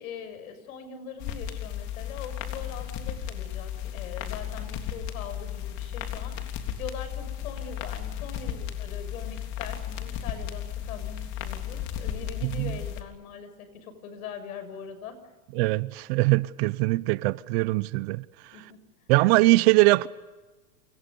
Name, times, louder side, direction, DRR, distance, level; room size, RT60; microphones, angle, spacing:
voice 1, 0.0-15.2 18.5-18.8, left 6 dB, 70° left, 6.8 m, -42 dB
sound 1, 1.2-13.0, left 10 dB, 40° left, 3.4 m, -34 dB
voice 2, 15.6-18.2 19.1-20.1, right 21 dB, 45° right, 0.8 m, -22 dB
29.5 x 27.5 x 5.4 m
supercardioid pair, 145°, 43 cm